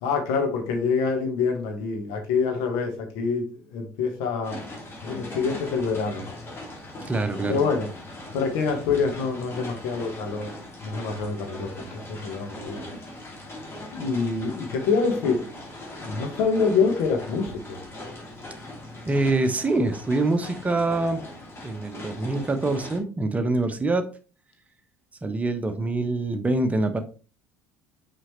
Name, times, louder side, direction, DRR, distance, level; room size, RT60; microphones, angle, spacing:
voice 1, 0.0-3.4 3.7-4.6 5.0-6.3 7.5-7.9 8.3-10.5 10.8-13.0 13.9-15.5 15.9-17.8, left 5 dB, 60° left, 1.3 m, -26 dB
sound 1, 4.4-23.0, left 1 dB, 30° left, 2.5 m, -40 dB
voice 2, 7.1-7.7 19.1-21.2 21.6-24.0 25.2-27.0, right 2 dB, 20° right, 1.0 m, -25 dB
6.1 x 5.2 x 3.1 m
figure-of-eight pair, 60°, 8 cm